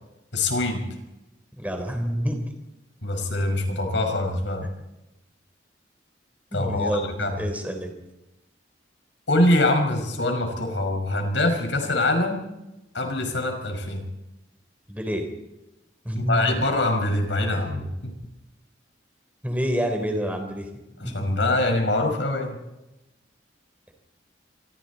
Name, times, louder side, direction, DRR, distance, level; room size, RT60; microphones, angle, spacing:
voice 1, 0.3-0.9 3.0-4.7 6.5-7.4 9.3-12.4 12.9-14.1 16.1-18.1 21.0-22.6, left 2 dB, 85° left, 4 dB, 5.7 m, -24 dB
voice 2, 1.6-2.4 6.5-7.9 14.9-15.3 16.0-16.6 17.5-17.8 19.4-20.7 21.0-21.2, equal, 10° right, 4 dB, 4.0 m, -28 dB
27.5 x 24.0 x 4.3 m, 0.96 s
head